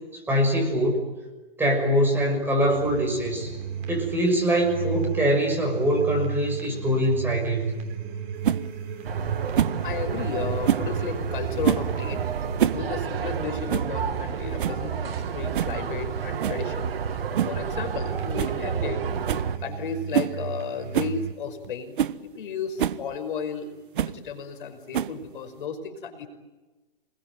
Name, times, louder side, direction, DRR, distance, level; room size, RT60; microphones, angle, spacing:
voice 1, 0.1-1.1 1.6-3.5 3.9-7.8, equal, 5° right, 0 dB, 6.4 m, -23 dB
sound 1, 2.7-21.3, right 8 dB, 30° right, 3.7 m, -35 dB
sound 2, 8.4-8.6 9.5-9.8 10.6-10.9 11.6-11.9 12.4-12.8 13.1-13.2 13.7-13.9 14.3-14.4 14.6-14.9 15.5-15.8 16.4-16.6 17.4-17.6 17.9-18.0 18.4-18.6 18.9-19.0 19.3-19.5 20.1-20.4 20.9-21.2 21.6-21.7 22.0-22.2 22.8-23.0 24.0-24.2 24.9-25.3, right 10 dB, 60° right, 1.2 m, -25 dB
sound 3, 9.0-19.6, right 6 dB, 75° right, 1.9 m, -31 dB
voice 2, 9.8-12.3 12.7-16.9 17.5-19.1 19.6-23.7 24.0-26.3, left 5 dB, 60° left, 7 dB, 5.5 m, -33 dB
28.0 x 21.5 x 9.3 m, 1.2 s
hypercardioid pair, 150°, 29 cm